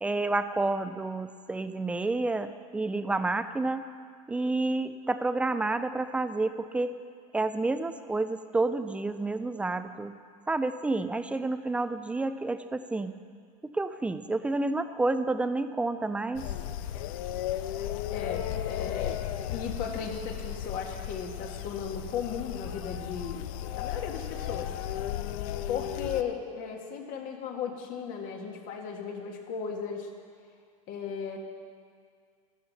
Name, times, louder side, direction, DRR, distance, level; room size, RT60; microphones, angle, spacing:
voice 1, 0.0-3.9 4.3-7.0 7.3-10.1 10.5-13.2 13.6-16.5, right 2 dB, 5° right, 11 dB, 0.4 m, -29 dB
sound 1, 16.4-26.2, left 11 dB, 65° left, 0.6 m, -35 dB
voice 2, 18.1-19.2 19.5-23.5 23.7-24.8 25.7-30.1 30.9-31.4, left 6 dB, 45° left, 2 dB, 1.8 m, -36 dB
13.5 x 12.5 x 4.1 m, 2.1 s
supercardioid pair, 130°, 19 cm